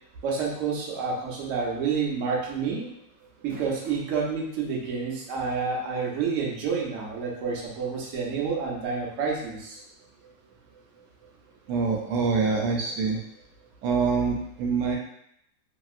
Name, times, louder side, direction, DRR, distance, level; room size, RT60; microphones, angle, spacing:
voice 1, 0.2-2.9 3.4-9.8, right 5 dB, 60° right, -3 dB, 0.9 m, -29 dB
sound 1, 1.5-1.8 2.1-2.2 3.2-4.2 4.9-5.0 6.6-6.7, equal, 45° right, 0.6 m, -46 dB
voice 2, 11.7-13.2 13.8-15.0, right 4 dB, 85° right, 0 dB, 1.2 m, -25 dB
2.9 x 2.8 x 2.4 m, 0.74 s
omnidirectional pair, 1.8 m